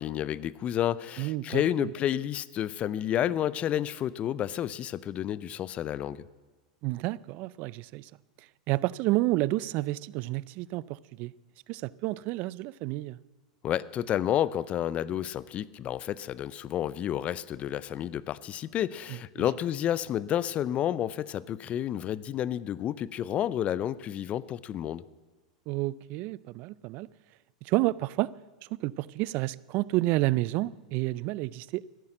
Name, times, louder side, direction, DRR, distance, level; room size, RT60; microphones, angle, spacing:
voice 1, 0.0-6.2 13.6-25.0, left 11 dB, 35° left, 0.5 m, -30 dB
voice 2, 1.2-1.9 6.8-8.1 8.7-11.3 11.7-13.2 19.1-19.4 25.7-27.1 27.6-28.3 28.7-32.0, right 18 dB, 50° right, 0.4 m, -30 dB
14.0 x 10.5 x 7.8 m
hypercardioid pair, 100°, 4 cm